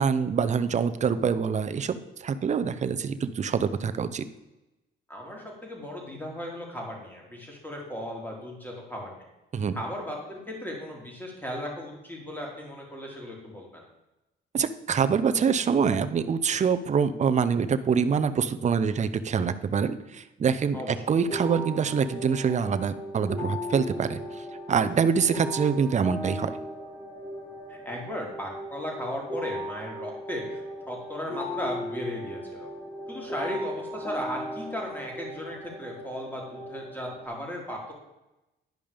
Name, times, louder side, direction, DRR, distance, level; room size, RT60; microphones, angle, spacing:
voice 1, 0.0-4.2 9.5-9.7 14.5-26.5, right 6 dB, 35° right, 11 dB, 0.6 m, -25 dB
voice 2, 5.1-9.2 9.7-13.8 20.7-21.0 27.7-30.6 30.9-32.7 33.1-37.9, equal, 10° left, -2 dB, 3.2 m, -36 dB
sound 1, 21.3-37.3, equal, 25° left, 2.6 m, -37 dB
10.5 x 5.3 x 5.1 m, 0.98 s
cardioid pair, 90°, 20 cm